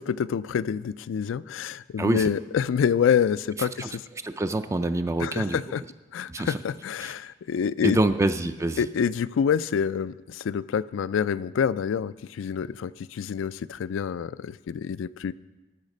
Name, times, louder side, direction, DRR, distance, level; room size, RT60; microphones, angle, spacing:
voice 1, 0.0-4.0 5.2-5.8 6.1-8.0 8.8-15.3, left 7 dB, 80° left, 17 dB, 0.3 m, -27 dB
voice 2, 2.0-2.3 3.6-5.6 6.3-6.6 7.0-7.1 7.8-8.9, right 2 dB, 15° right, 9 dB, 0.3 m, -26 dB
13.5 x 6.6 x 5.3 m, 1.1 s
head